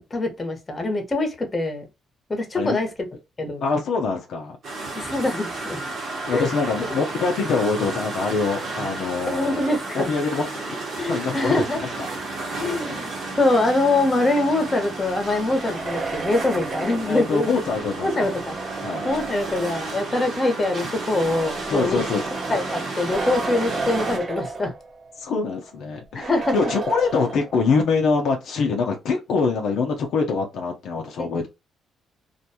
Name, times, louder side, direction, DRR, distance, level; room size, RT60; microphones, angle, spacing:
voice 1, 0.1-1.8 2.3-2.9 3.4-3.6 4.9-5.8 6.3-6.5 6.8-7.0 9.3-10.1 11.0-11.8 12.6-17.5 18.0-18.6 19.0-22.0 22.5-24.7 26.1-26.5, left 2 dB, 25° left, 0.9 m, -24 dB
voice 2, 3.6-4.6 6.3-10.8 11.1-11.5 12.0-12.1 17.1-18.3 18.8-19.1 21.7-22.3 25.2-31.5, left 4 dB, 75° left, 0.6 m, -24 dB
sound 1, 4.6-24.2, right 3 dB, 60° right, 1.1 m, -32 dB
sound 2, 15.4-20.1 21.0-25.2 25.5-25.6 26.2-27.8, right 4 dB, 45° right, 0.7 m, -33 dB
2.5 x 2.2 x 2.7 m
cardioid pair, 90°, 0 cm